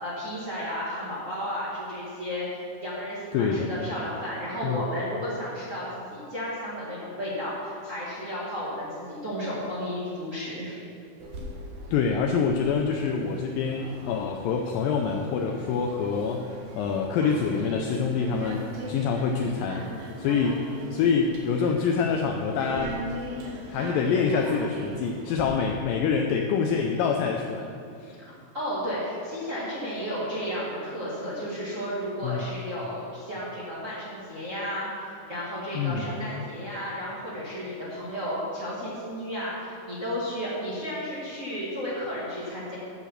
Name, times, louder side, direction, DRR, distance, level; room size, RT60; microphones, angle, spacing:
voice 1, 0.0-2.4 2.8-10.7 28.2-28.3 28.5-42.8, equal, 40° right, -8 dB, 1.1 m, -33 dB
voice 2, 3.3-3.7 4.6-4.8 11.9-19.9 20.2-20.6 20.9-23.1 23.7-27.7 28.0-28.2 32.2-32.4 35.7-36.1, left 5 dB, 80° left, 2 dB, 2.0 m, -26 dB
sound 1, 11.2-25.4, right 1 dB, 65° right, 2.7 m, -40 dB
9.8 x 5.9 x 7.2 m, 2.6 s
omnidirectional pair, 4.6 m